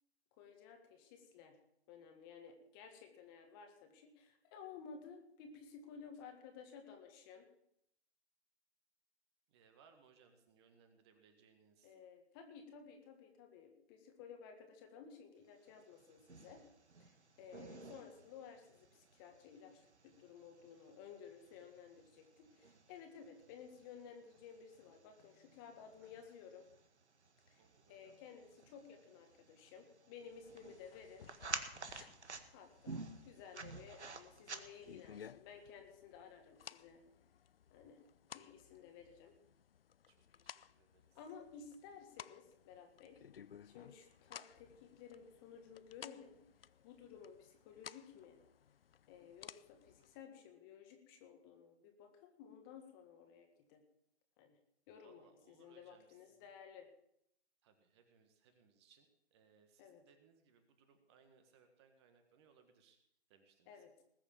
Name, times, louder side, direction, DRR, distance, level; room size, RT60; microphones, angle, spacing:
voice 1, 0.4-1.5 1.9-7.4 11.8-16.6 17.0-26.7 27.5-27.6 27.9-31.3 32.5-37.0 37.7-38.0 38.3-39.3 41.1-43.2 43.6-48.4 49.1-53.8 54.4-54.6 54.9-56.9 59.8-60.0 63.7-64.0, left 6 dB, 20° left, 4 dB, 1.6 m, -56 dB
voice 2, 9.5-11.9 17.4-17.7 27.6-28.2 30.5-30.7 31.9-32.2 40.1-41.2 55.0-56.5 57.6-63.0 63.3-63.8, right 6 dB, 25° right, 7 dB, 1.6 m, -69 dB
sound 1, 15.7-35.1, right 4 dB, 85° right, 1.8 m, -52 dB
sound 2, 30.3-50.2, left 8 dB, 60° left, 0.6 m, -58 dB
20.0 x 7.0 x 6.9 m, 0.74 s
figure-of-eight pair, 150°, 33 cm